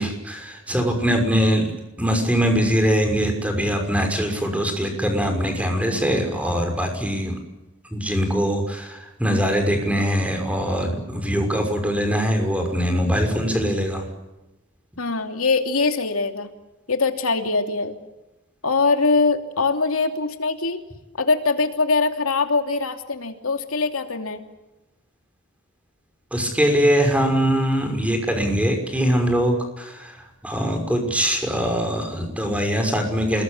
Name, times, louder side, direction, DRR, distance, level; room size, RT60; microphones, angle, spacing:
voice 1, 0.0-7.4 7.9-14.1 26.3-33.4, equal, 5° right, 4 dB, 5.9 m, -22 dB
voice 2, 15.0-16.5 16.9-18.0 18.6-20.8 21.2-24.4, left 4 dB, 80° left, 6 dB, 2.9 m, -22 dB
28.5 x 21.5 x 8.4 m, 1.0 s
head